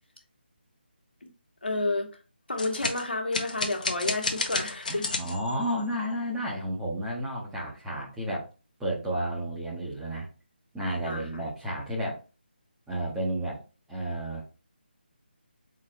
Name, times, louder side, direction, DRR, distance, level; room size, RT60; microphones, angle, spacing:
voice 1, 1.6-2.1 2.5-5.1 11.0-11.4, left 2 dB, 65° left, 1.3 m, -30 dB
sound 1, 2.6-5.8, left 3 dB, 50° left, 0.7 m, -32 dB
voice 2, 4.9-8.5 8.8-10.3 10.7-12.2 12.9-13.6 13.9-14.4, right 1 dB, 5° right, 0.8 m, -32 dB
4.0 x 3.9 x 3.0 m
figure-of-eight pair, 155°, 6 cm